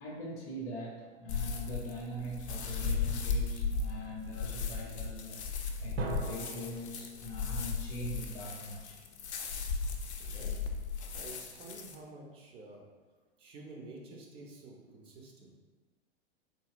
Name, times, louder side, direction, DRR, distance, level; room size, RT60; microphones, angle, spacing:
voice 1, 0.0-9.0, right 1 dB, 30° left, -5 dB, 0.6 m, -42 dB
sound 1, 1.3-11.9, left 5 dB, 75° left, 0.5 m, -36 dB
sound 2, 6.0-8.7, right 4 dB, 70° right, 0.6 m, -42 dB
voice 2, 9.9-10.5 11.1-12.8 13.4-15.5, right 2 dB, 20° right, -1 dB, 0.3 m, -50 dB
3.8 x 2.7 x 2.3 m, 1.3 s
figure-of-eight pair, 95°, 34 cm